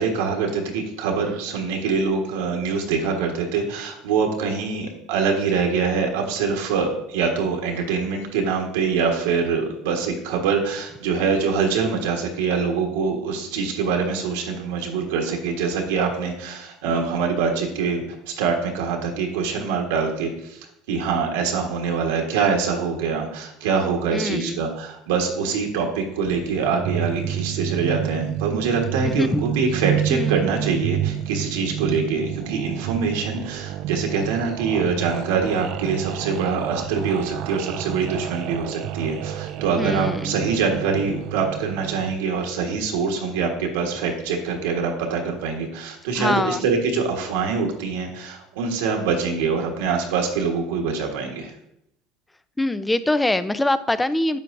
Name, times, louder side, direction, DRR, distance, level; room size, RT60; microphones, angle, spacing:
voice 1, 0.0-51.5, right 5 dB, 80° right, 1 dB, 1.3 m, -24 dB
voice 2, 24.1-24.6 29.0-29.4 30.1-30.5 39.7-40.4 46.2-46.6 52.6-54.4, left 1 dB, 10° left, 14 dB, 0.5 m, -23 dB
sound 1, 26.2-42.2, right 11 dB, 60° right, 0.4 m, -29 dB
8.8 x 7.5 x 2.6 m, 0.79 s
supercardioid pair, 95°, 0 cm